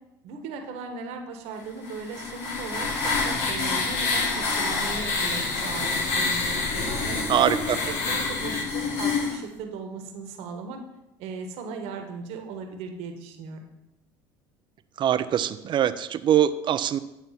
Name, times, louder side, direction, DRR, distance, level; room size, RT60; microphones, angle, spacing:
voice 1, 0.2-7.2 7.8-10.8 11.2-13.7, right 4 dB, 70° right, 5 dB, 1.3 m, -37 dB
sound 1, 1.8-9.4, left 3 dB, 70° left, 1.8 m, -27 dB
voice 2, 7.3-7.8 15.0-17.0, right 10 dB, 45° right, 13 dB, 0.6 m, -23 dB
9.3 x 4.1 x 5.8 m, 0.92 s
hypercardioid pair, 75°, 11 cm